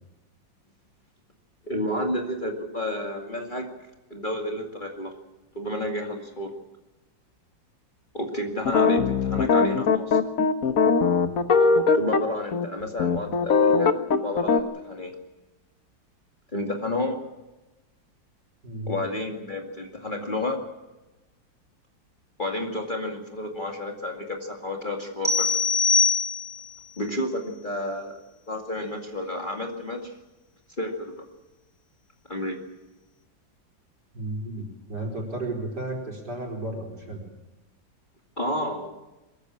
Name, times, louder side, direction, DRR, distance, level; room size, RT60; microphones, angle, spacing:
voice 1, 1.6-3.7 4.1-5.1 5.5-6.5 8.1-10.2 11.9-15.1 16.5-17.2 18.9-20.6 22.4-25.6 27.0-28.2 28.5-30.1 30.8-31.2 32.3-32.6 38.4-39.0, left 1 dB, 25° left, 1 dB, 2.3 m, -31 dB
sound 1, 8.7-12.2 12.5-12.7 13.0-14.6, left 5 dB, 50° left, 1.4 m, -20 dB
voice 2, 18.6-19.0 34.1-37.2, right 2 dB, 60° right, 0 dB, 5.2 m, -33 dB
sound 2, 25.2-26.8, left 4 dB, 15° right, 1.9 m, -22 dB
22.5 x 15.0 x 8.5 m, 1.1 s
omnidirectional pair, 2.1 m